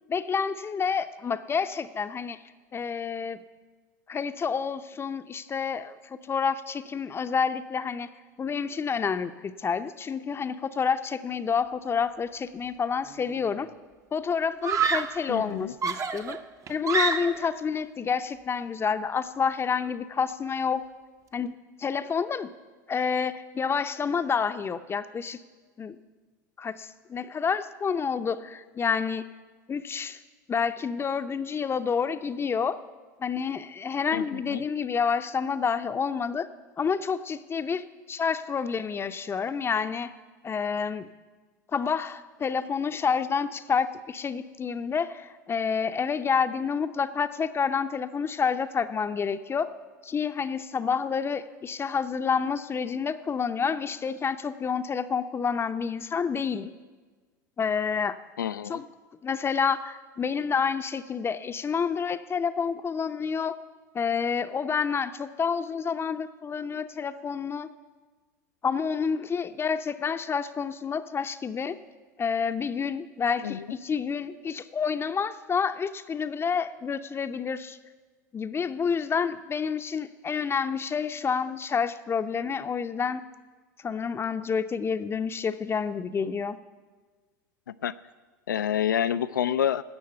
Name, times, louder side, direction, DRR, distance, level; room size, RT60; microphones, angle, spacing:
voice 1, 0.1-2.4 2.7-3.4 4.1-8.1 8.4-13.7 14.1-16.4 16.7-20.8 21.3-22.5 22.9-25.4 25.8-26.0 26.6-29.2 29.7-30.2 30.5-32.8 33.2-36.5 36.8-40.1 40.4-41.1 41.7-49.7 50.0-56.7 57.6-58.2 58.6-58.9 59.2-63.6 63.9-67.7 68.6-71.8 72.2-77.8 78.3-83.2 83.8-86.6, left 6 dB, 25° left, 10 dB, 0.6 m, -29 dB
Screaming, 13.1-13.5 14.6-15.3 15.8-17.6, right 5 dB, 30° right, 0.8 m, -28 dB
voice 2, 15.3-15.7 34.1-34.6 58.4-58.8 73.4-73.6 87.8-87.9 88.5-89.8, left 10 dB, 85° left, 15 dB, 0.4 m, -28 dB
16.5 x 6.3 x 7.9 m, 1.4 s
hypercardioid pair, 85°, 10 cm